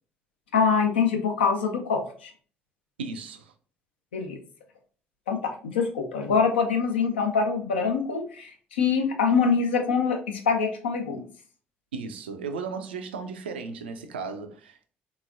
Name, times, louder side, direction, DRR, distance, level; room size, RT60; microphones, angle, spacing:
voice 1, 0.5-2.3 4.1-4.4 5.3-11.2, left 5 dB, 75° left, 0.5 m, -24 dB
voice 2, 3.0-3.5 11.9-14.9, right 5 dB, 75° right, 0.3 m, -35 dB
3.7 x 2.9 x 2.4 m
figure-of-eight pair, 45°, 6 cm